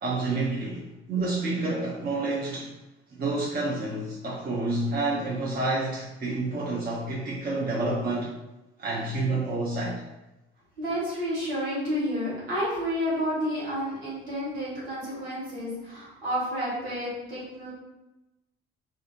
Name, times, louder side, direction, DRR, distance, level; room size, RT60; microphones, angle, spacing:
voice 1, 0.0-2.7 3.1-8.3 8.8-10.0, right 2 dB, 30° right, -5 dB, 0.7 m, -29 dB
voice 2, 10.8-17.7, equal, 90° right, -9 dB, 1.1 m, -30 dB
2.6 x 2.6 x 2.5 m, 0.98 s
hypercardioid pair, 45°, 29 cm